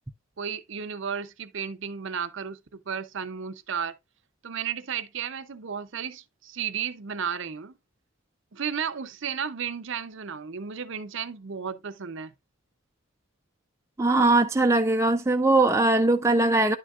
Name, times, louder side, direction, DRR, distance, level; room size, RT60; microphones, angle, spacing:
voice 1, 0.4-3.9 4.4-7.7 8.5-12.3, right 7 dB, 55° right, 0.6 m, -33 dB
voice 2, 14.0-16.8, right 2 dB, 15° right, 0.4 m, -21 dB
10.5 x 6.4 x 2.4 m
head